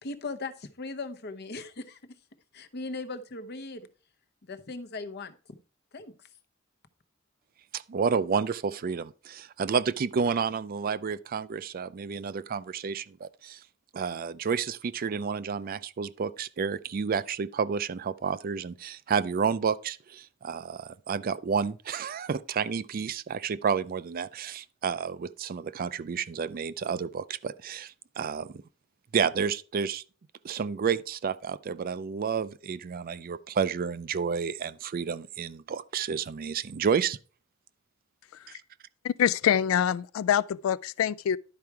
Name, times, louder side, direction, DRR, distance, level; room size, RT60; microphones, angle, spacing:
voice 1, 0.0-2.2 2.5-3.9 4.4-5.4 5.9-6.1, left 3 dB, 55° left, 0.8 m, -38 dB
voice 2, 7.7-13.6 13.9-28.6 29.1-30.0 30.4-37.2 38.5-38.6, right 6 dB, 45° right, 0.4 m, -30 dB
voice 3, 39.0-41.4, left 9 dB, 80° left, 0.3 m, -25 dB
11.0 x 4.8 x 4.5 m
head